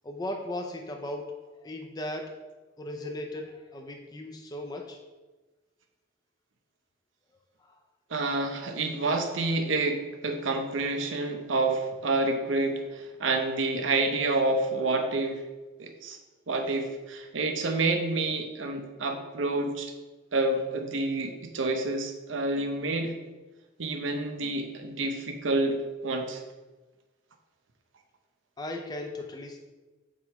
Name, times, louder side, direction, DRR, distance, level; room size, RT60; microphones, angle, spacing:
voice 1, 0.0-1.3 1.6-2.3 2.8-5.0 7.6-7.7 28.6-29.6, left 1 dB, 20° left, 2 dB, 0.5 m, -37 dB
voice 2, 8.1-15.4 15.8-16.2 16.5-19.9 20.3-23.1 23.8-25.8 26.0-26.4, right 2 dB, 90° right, 5 dB, 0.8 m, -28 dB
7.5 x 3.1 x 4.7 m, 1.2 s
head